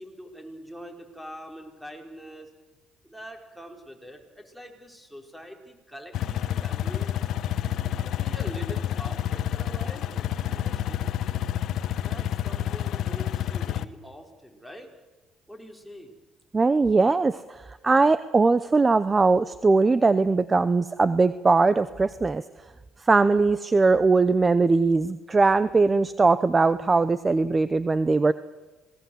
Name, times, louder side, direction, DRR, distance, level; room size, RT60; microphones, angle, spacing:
voice 1, 0.0-2.5 3.0-7.1 8.0-11.0 12.0-14.9 15.5-16.1, equal, 5° right, 3 dB, 4.6 m, -43 dB
sound 1, 6.1-13.8, left 11 dB, 65° left, 1.1 m, -29 dB
voice 2, 16.5-22.4 23.0-28.3, right 3 dB, 25° right, 15 dB, 0.7 m, -20 dB
26.5 x 18.5 x 7.9 m, 1.2 s
supercardioid pair, 90°, 0 cm